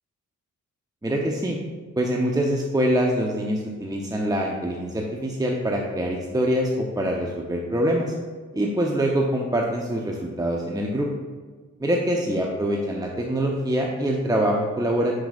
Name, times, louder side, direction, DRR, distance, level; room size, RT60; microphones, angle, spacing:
voice 1, 1.0-1.6 2.0-8.1 8.5-11.1 11.8-15.2, right 1 dB, 10° right, 0 dB, 0.8 m, -24 dB
10.5 x 4.7 x 2.5 m, 1.4 s
cardioid pair, 50°, 32 cm